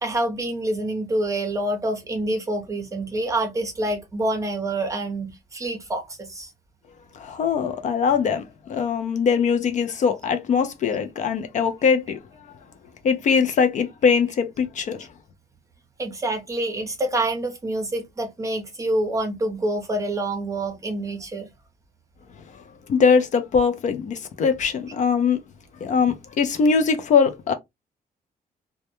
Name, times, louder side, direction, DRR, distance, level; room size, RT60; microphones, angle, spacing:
voice 1, 0.0-6.5 16.0-21.5, right 1 dB, 20° right, 0.6 m, -27 dB
voice 2, 7.2-12.2 13.0-15.1 22.9-25.4 25.8-27.5, left 6 dB, 50° left, 0.4 m, -21 dB
2.1 x 2.1 x 2.8 m
cardioid pair, 165°, 16 cm